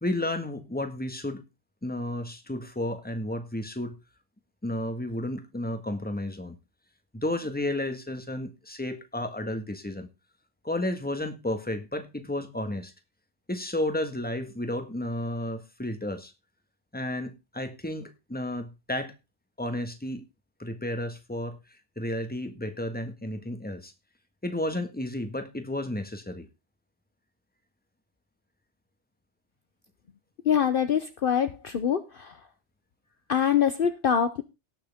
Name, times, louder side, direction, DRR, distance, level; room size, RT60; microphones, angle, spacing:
voice 1, 0.0-1.4 1.8-4.0 4.6-6.6 7.1-10.1 10.6-12.9 13.5-16.3 16.9-19.1 19.6-20.2 20.6-21.6 22.0-23.9 24.4-26.5, left 1 dB, 10° left, 8 dB, 1.5 m, -32 dB
voice 2, 30.5-32.3 33.3-34.4, left 8 dB, 55° left, 10 dB, 0.9 m, -24 dB
18.0 x 6.5 x 3.5 m, 0.26 s
omnidirectional pair, 1.2 m